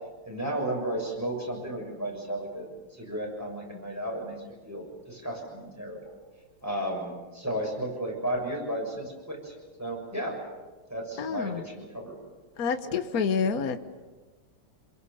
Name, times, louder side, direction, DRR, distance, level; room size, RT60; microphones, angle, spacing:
voice 1, 0.2-6.1 6.6-9.5 9.8-10.4 10.9-12.2 12.8-13.0, right 1 dB, 5° right, 0 dB, 6.8 m, -34 dB
voice 2, 11.2-11.6 12.6-13.8, left 6 dB, 50° left, 8 dB, 1.5 m, -28 dB
27.5 x 22.5 x 7.0 m, 1.3 s
omnidirectional pair, 2.4 m